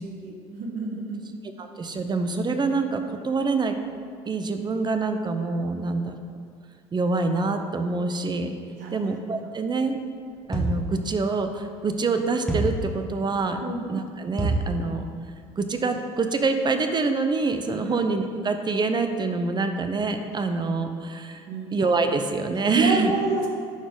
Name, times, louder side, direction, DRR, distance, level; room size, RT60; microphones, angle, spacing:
voice 1, 0.0-1.3 8.8-9.1 13.6-13.8 17.8-18.0 21.5-21.7 22.7-23.5, right 3 dB, 65° right, 0 dB, 1.4 m, -29 dB
voice 2, 1.6-3.7 4.2-6.1 6.9-8.5 8.9-10.0 10.5-13.6 13.9-15.0 15.6-21.4 21.7-23.1, right 3 dB, 30° right, 7 dB, 0.7 m, -26 dB
sound 1, 10.5-11.0 12.5-12.9 14.4-14.8, right 2 dB, 5° left, 1.4 m, -25 dB
11.0 x 4.0 x 3.9 m, 2.1 s
hypercardioid pair, 70°, 15 cm